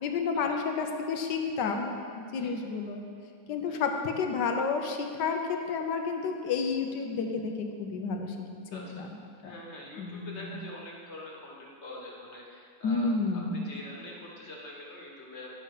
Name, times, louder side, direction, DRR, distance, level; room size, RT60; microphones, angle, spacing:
voice 1, 0.0-3.0 3.5-8.3 8.7-9.1 9.4-9.5 10.0-10.6 12.8-13.6, left 5 dB, 70° left, 4 dB, 1.5 m, -31 dB
voice 2, 8.7-9.1 9.4-13.2 13.5-15.5, left 1 dB, 40° left, -2 dB, 1.6 m, -45 dB
11.0 x 5.6 x 6.5 m, 2.5 s
omnidirectional pair, 2.0 m